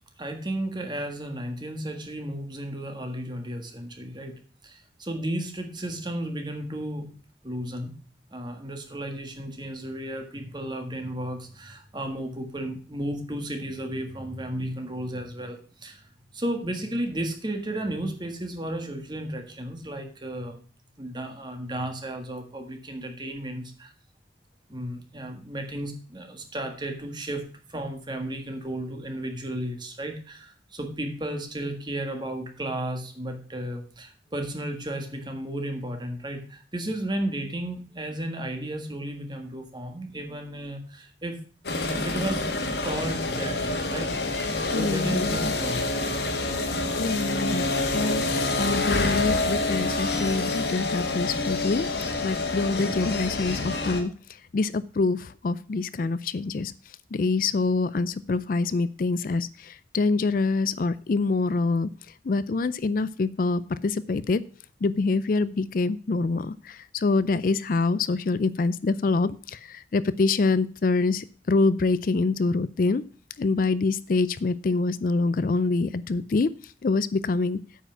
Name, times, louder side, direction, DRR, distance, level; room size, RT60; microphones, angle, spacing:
voice 1, 0.2-7.1 7.4-7.9 8.3-16.1 16.3-20.6 21.0-23.9 24.7-41.4 41.9-42.5 42.8-44.1 44.7-46.1, right 1 dB, 25° right, 5 dB, 1.6 m, -33 dB
sound 1, 41.6-54.0, left 2 dB, 70° left, 1.7 m, -27 dB
voice 2, 44.7-45.5 47.0-47.7 47.9-48.2 48.6-51.9 52.2-54.1 54.5-56.7 57.1-61.9 62.2-64.4 64.8-73.0 73.4-77.6, left 3 dB, 50° left, 16 dB, 0.4 m, -25 dB
8.6 x 5.7 x 7.1 m, 0.39 s
head